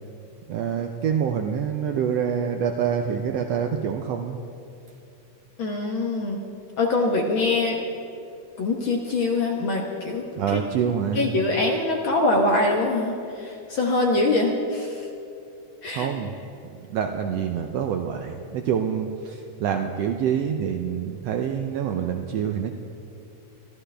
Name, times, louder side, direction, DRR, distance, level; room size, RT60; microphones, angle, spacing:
voice 1, 0.5-4.4 10.4-11.4 15.9-16.3 16.9-22.7, right 8 dB, 75° right, 4 dB, 1.5 m, -26 dB
voice 2, 5.6-6.4 6.8-7.8 8.6-10.2 10.5-10.6 11.1-15.1 15.8-16.1, left 2 dB, 55° left, 0 dB, 1.5 m, -23 dB
24.0 x 13.5 x 3.4 m, 2.6 s
omnidirectional pair, 3.5 m